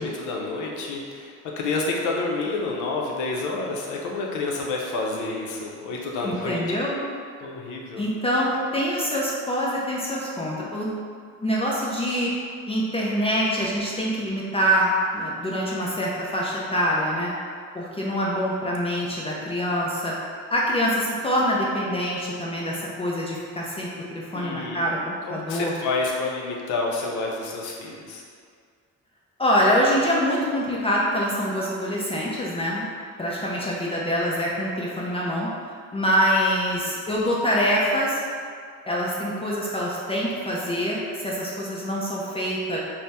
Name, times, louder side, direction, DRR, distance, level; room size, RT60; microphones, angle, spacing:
voice 1, 0.0-6.6 7.4-8.0 24.3-24.8 25.2-28.2, left 3 dB, 75° left, -1 dB, 0.6 m, -29 dB
voice 2, 6.2-7.0 8.0-10.9 11.4-12.4 12.7-17.3 17.7-20.2 20.5-25.7 29.4-32.8 33.2-35.5 35.9-38.2 38.9-42.8, equal, 20° left, -5 dB, 0.4 m, -25 dB
2.7 x 2.1 x 3.3 m, 2.1 s
cardioid pair, 90°, 30 cm